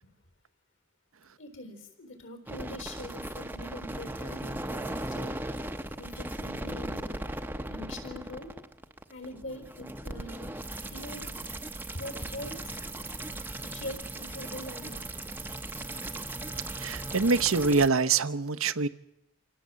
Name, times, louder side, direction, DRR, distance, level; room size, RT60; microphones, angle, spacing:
voice 1, 1.4-5.4 6.0-7.2 7.7-8.5 9.1-10.5 10.8-11.2 11.9-12.8 13.6-15.4 15.8-16.0, left 1 dB, 65° left, 4.1 m, -43 dB
sound 1, 2.5-17.9, right 1 dB, 10° right, 0.8 m, -38 dB
voice 2, 16.8-18.9, right 4 dB, 85° right, 1.0 m, -25 dB
27.0 x 18.0 x 7.6 m
head